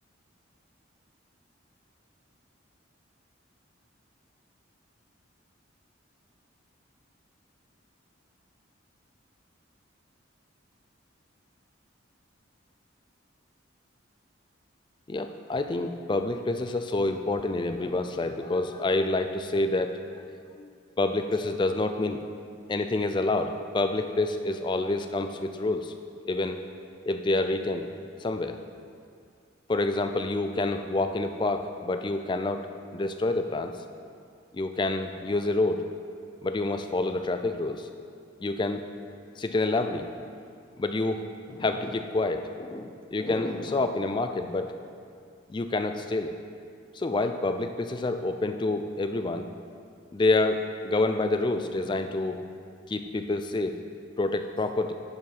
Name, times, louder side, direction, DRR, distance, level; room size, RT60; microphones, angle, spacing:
voice 1, 15.1-20.3 20.6-20.7 21.0-22.2 22.7-25.9 26.2-26.6 27.0-27.9 28.2-28.6 29.7-32.7 32.9-33.7 34.5-35.9 36.4-37.9 38.4-38.9 39.4-40.1 40.8-44.7 45.5-46.3 46.9-49.5 50.1-52.4 52.9-53.7 54.2-54.9, left 2 dB, 25° left, 7 dB, 0.3 m, -28 dB
8.8 x 4.7 x 5.4 m, 2.3 s
head